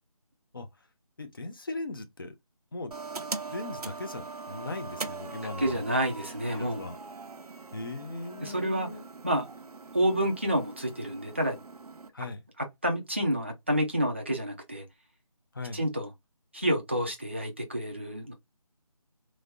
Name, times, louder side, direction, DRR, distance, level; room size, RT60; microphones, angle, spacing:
voice 1, 0.5-0.9 1.2-2.4 2.7-3.0 3.5-5.9 6.5-7.0 7.7-9.0 12.1-12.4 15.5-15.8, left 2 dB, 35° left, 0.6 m, -38 dB
sound 1, 2.9-12.1, right 4 dB, 85° right, 0.6 m, -41 dB
voice 2, 5.6-6.8 8.4-8.9 9.2-9.4 9.9-11.6 12.8-14.8 15.7-16.1 16.5-18.3, equal, 20° right, 0.4 m, -28 dB
3.2 x 2.5 x 2.2 m
figure-of-eight pair, 165°, 19 cm